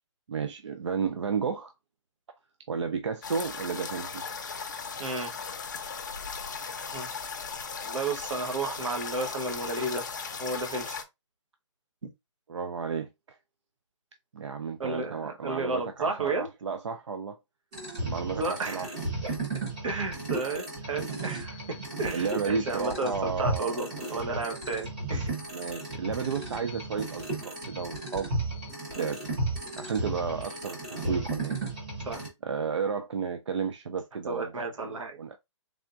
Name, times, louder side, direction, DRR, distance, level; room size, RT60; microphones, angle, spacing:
voice 1, 0.3-1.7 2.7-4.2 12.5-13.4 14.3-17.4 18.0-18.9 22.1-23.9 25.5-28.3 28.9-29.2 29.8-31.6 32.4-34.5 35.2-35.4, right 6 dB, 65° right, 0.5 m, -32 dB
sound 1, 3.2-11.0, left 5 dB, 35° left, 0.6 m, -37 dB
voice 2, 5.0-5.3 6.9-7.1 7.8-10.1 10.4-11.0 12.0-12.1 14.8-16.5 18.3-18.9 19.2-19.3 19.8-25.4 31.0-31.3 32.0-32.2 34.3-35.2, right 3 dB, 85° right, 1.2 m, -33 dB
sound 2, 17.7-32.3, right 2 dB, 15° right, 0.8 m, -35 dB
3.6 x 3.5 x 2.5 m
hypercardioid pair, 180°, 16 cm